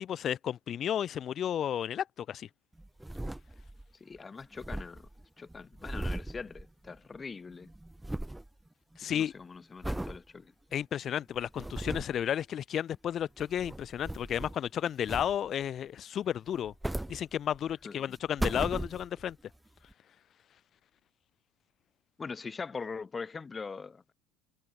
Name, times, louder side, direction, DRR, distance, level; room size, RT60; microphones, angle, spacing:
voice 1, 0.0-2.5 9.0-9.3 10.7-16.7 17.1-19.4, left 9 dB, 45° left, 1.0 m, -32 dB
sound 1, 2.8-3.9 4.2-4.3 4.4-7.2 7.5-8.5 8.9-9.3 9.8-10.2 10.7-10.8 11.4-12.2 13.2-14.7 15.1-15.6 16.5-17.7 18.1-19.3 19.9-20.0, right 1 dB, 5° right, 2.8 m, -38 dB
voice 2, 4.0-5.1 5.4-7.7 9.0-10.5 17.8-18.2 22.2-24.1, left 4 dB, 25° left, 2.8 m, -42 dB
supercardioid pair, 105°, 0 cm